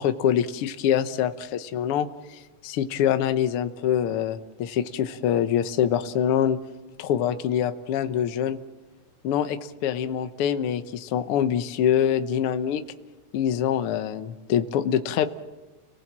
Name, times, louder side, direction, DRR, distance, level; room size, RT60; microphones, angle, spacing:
voice 1, 0.0-6.6 7.0-8.6 9.2-12.8 13.3-15.3, left 9 dB, 65° left, 9 dB, 1.4 m, -25 dB
30.0 x 20.0 x 7.5 m, 1.2 s
omnidirectional pair, 3.8 m